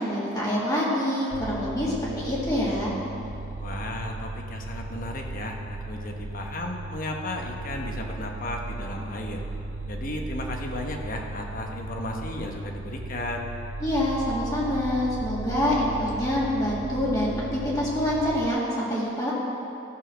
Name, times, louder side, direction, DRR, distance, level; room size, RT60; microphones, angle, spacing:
voice 1, 0.0-2.9 13.8-19.3, left 1 dB, 20° left, -7 dB, 2.0 m, -26 dB
sound 1, 1.3-18.5, right 2 dB, 70° right, 0.6 m, -36 dB
voice 2, 3.6-9.4 9.9-13.5, left 1 dB, 45° left, 2 dB, 1.1 m, -34 dB
14.5 x 5.6 x 6.3 m, 2.9 s
head